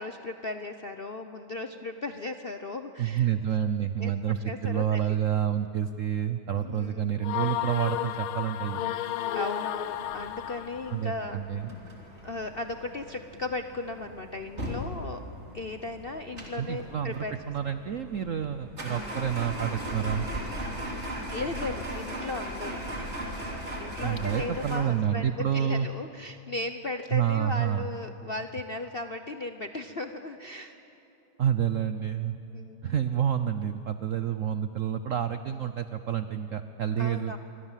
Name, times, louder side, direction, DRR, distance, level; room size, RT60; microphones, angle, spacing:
voice 1, 0.0-3.3 4.0-5.2 6.5-7.2 9.3-11.4 12.2-15.2 15.5-17.3 21.3-22.8 23.8-30.8 32.5-32.9 37.0-37.4, left 2 dB, 50° left, 7 dB, 0.6 m, -36 dB
voice 2, 3.0-8.9 10.9-11.7 16.6-20.3 24.0-25.9 27.1-27.9 31.4-32.4 32.8-37.4, right 9 dB, 70° right, 10 dB, 0.7 m, -29 dB
sound 1, 7.2-11.0, left 12 dB, 85° left, 1.6 m, -32 dB
sound 2, 9.8-24.8, equal, 35° right, 3.6 m, -38 dB
28.0 x 24.5 x 7.4 m, 2.9 s
omnidirectional pair, 2.2 m